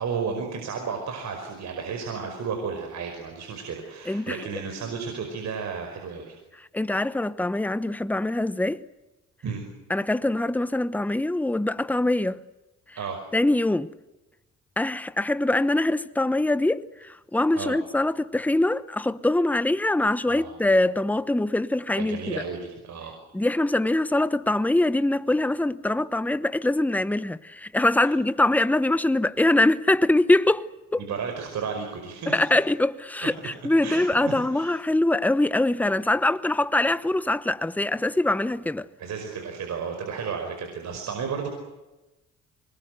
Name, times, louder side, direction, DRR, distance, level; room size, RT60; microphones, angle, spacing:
voice 1, 0.0-6.4 9.4-9.6 13.0-13.2 17.6-17.8 20.3-20.5 22.0-23.2 28.0-28.1 31.0-32.4 33.8-34.7 39.0-41.5, right 6 dB, 65° right, 5.3 m, -33 dB
voice 2, 4.1-4.4 6.7-8.8 9.9-12.4 13.3-13.9 14.8-22.4 23.3-31.0 32.3-38.9, left 2 dB, 5° left, 1.0 m, -23 dB
25.0 x 21.5 x 8.0 m
cardioid pair, 90°, 30 cm